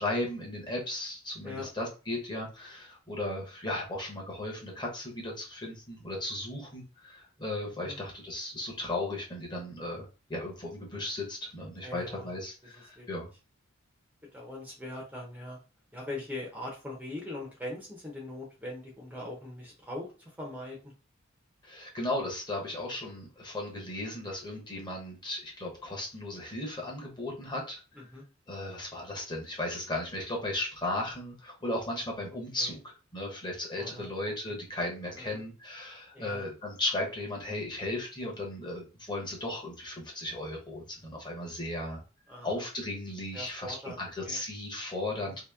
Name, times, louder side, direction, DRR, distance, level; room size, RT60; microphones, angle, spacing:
voice 1, 0.0-13.3 21.6-27.8 28.5-42.0 42.4-45.4, left 1 dB, 20° left, -1 dB, 1.0 m, -36 dB
voice 2, 11.8-12.3 12.6-13.1 14.3-15.6 15.9-20.8 27.9-28.3 32.3-32.8 33.8-34.6 35.1-35.4 36.1-36.5 42.3-42.7 43.3-44.0 44.2-44.4 45.3-45.4, left 1 dB, 5° right, -2 dB, 0.8 m, -41 dB
2.9 x 2.9 x 3.4 m, 0.33 s
head